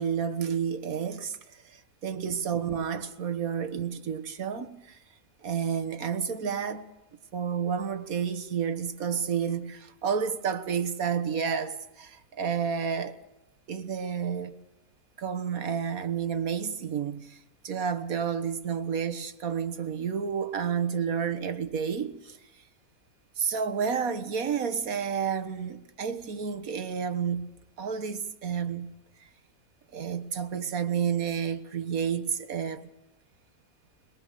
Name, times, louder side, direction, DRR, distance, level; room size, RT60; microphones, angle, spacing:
voice 1, 0.0-1.4 1.7-5.0 5.4-6.8 7.3-13.2 13.7-14.6 15.2-17.4 17.6-22.4 23.4-27.5 27.8-28.9 29.9-32.9, right 7 dB, 65° right, 1.8 m, -30 dB
22.5 x 22.0 x 6.6 m
omnidirectional pair, 1.6 m